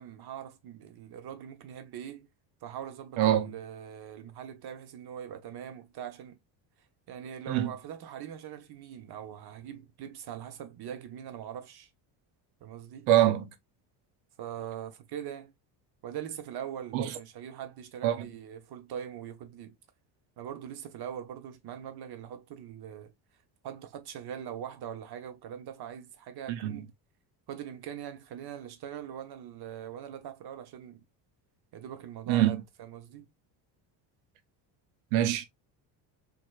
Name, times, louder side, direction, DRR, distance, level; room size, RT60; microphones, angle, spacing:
voice 1, 0.0-2.3 2.6-6.4 7.1-11.9 12.6-13.1 14.4-15.5 16.0-19.8 20.4-23.1 23.6-26.9 27.5-31.0 31.7-33.3, right 9 dB, 55° right, 0.9 m, -42 dB
voice 2, 13.1-13.5 16.9-17.1 18.0-18.3 26.6-26.7 32.3-32.6 35.1-35.5, right 12 dB, 80° right, 0.8 m, -24 dB
3.2 x 2.8 x 2.3 m
cardioid pair, 110°, 47 cm